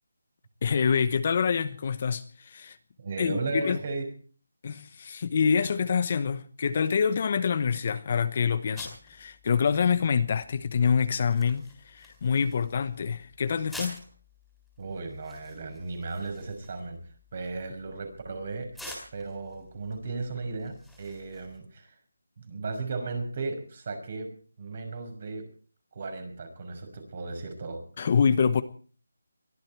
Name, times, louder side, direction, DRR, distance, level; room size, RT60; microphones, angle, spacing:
voice 1, 0.6-2.8 3.2-3.8 4.6-14.0 28.0-28.6, left 6 dB, 35° left, 0.9 m, -26 dB
voice 2, 3.0-4.1 14.8-18.8 19.1-22.0 22.4-24.3 24.6-25.5 25.9-27.8, right 3 dB, 40° right, 5.7 m, -35 dB
sound 1, 8.8-21.6, left 1 dB, ahead, 4.0 m, -49 dB
22.5 x 14.0 x 4.6 m
figure-of-eight pair, 170°, 0 cm